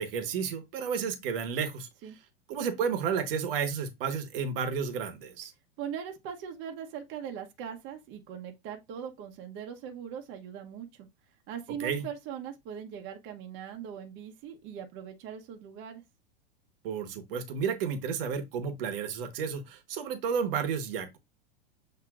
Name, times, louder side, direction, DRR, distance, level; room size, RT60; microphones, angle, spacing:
voice 1, 0.0-1.9 2.5-5.5 11.8-12.0 16.8-21.2, right 6 dB, 65° right, 1.1 m, -32 dB
voice 2, 5.8-11.1 11.5-16.0, right 8 dB, 40° right, 0.9 m, -40 dB
7.3 x 2.8 x 2.4 m
supercardioid pair, 135°, 30 cm